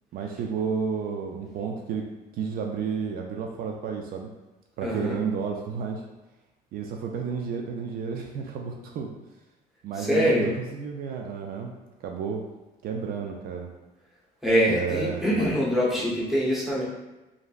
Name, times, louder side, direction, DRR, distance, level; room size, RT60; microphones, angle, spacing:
voice 1, 0.1-4.3 4.8-6.0 6.7-9.1 9.8-11.7 12.0-12.4 12.8-13.7 14.7-15.6 16.0-16.1, right 6 dB, 60° right, 2 dB, 0.4 m, -31 dB
voice 2, 4.8-5.2 10.0-10.5 14.4-16.8, equal, ahead, -7 dB, 0.9 m, -24 dB
2.9 x 2.6 x 2.4 m, 1.1 s
cardioid pair, 110°, 17 cm